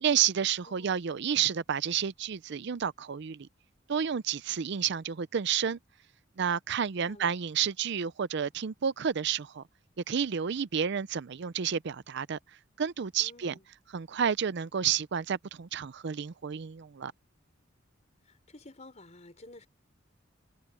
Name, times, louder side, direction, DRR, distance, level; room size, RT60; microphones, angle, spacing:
voice 1, 0.0-3.5 3.9-5.8 6.4-9.6 10.1-12.4 12.8-13.5 13.9-17.1, right 8 dB, 60° right, 0.5 m, -30 dB
voice 2, 13.2-13.6 18.2-19.7, left 2 dB, 35° left, 4.8 m, -52 dB
head